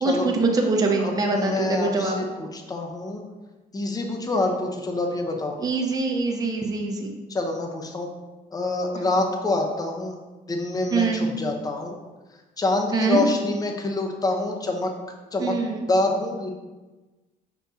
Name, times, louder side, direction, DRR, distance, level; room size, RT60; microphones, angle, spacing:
voice 1, 0.0-2.3 5.6-7.1 10.9-11.4 12.9-13.2 15.4-15.8, right 3 dB, 20° right, 1 dB, 0.6 m, -24 dB
voice 2, 1.0-3.2 3.7-5.6 7.3-8.1 8.5-10.2 10.5-12.0 12.6-14.9 15.3-15.5 15.9-16.5, left 2 dB, 20° left, 2 dB, 0.7 m, -26 dB
5.4 x 2.7 x 3.5 m, 1.2 s
cardioid pair, 110°, 17 cm